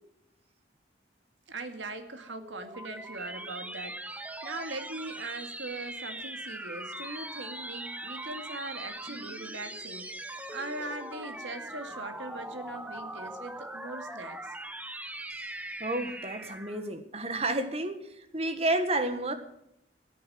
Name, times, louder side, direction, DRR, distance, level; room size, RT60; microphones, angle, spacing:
voice 1, 1.5-14.5, right 2 dB, 90° right, 2.1 m, -41 dB
sound 1, 2.2-16.9, right 1 dB, 10° right, 0.9 m, -41 dB
voice 2, 15.8-18.0 18.3-19.3, right 2 dB, 35° right, 1.6 m, -30 dB
16.5 x 9.4 x 7.7 m
head